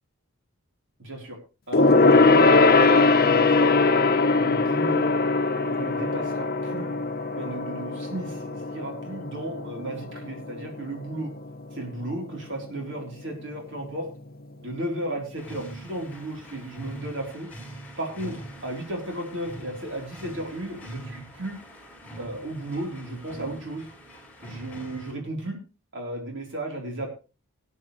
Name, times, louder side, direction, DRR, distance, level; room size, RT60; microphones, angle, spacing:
voice 1, 1.0-1.4 1.7-3.8 4.4-5.1 5.7-6.9 7.4-11.3 11.7-14.1 14.6-17.5 18.0-21.6 22.2-23.9 24.4-25.6 25.9-27.1, right 1 dB, 55° right, 1 dB, 3.8 m, -34 dB
Gong, 1.7-11.5 11.8-12.1 12.4-12.5, left 3 dB, 45° left, 1.0 m, -21 dB
sound 1, 15.4-25.1, right 1 dB, 5° left, 5.6 m, -43 dB
19.5 x 10.0 x 3.2 m, 0.33 s
head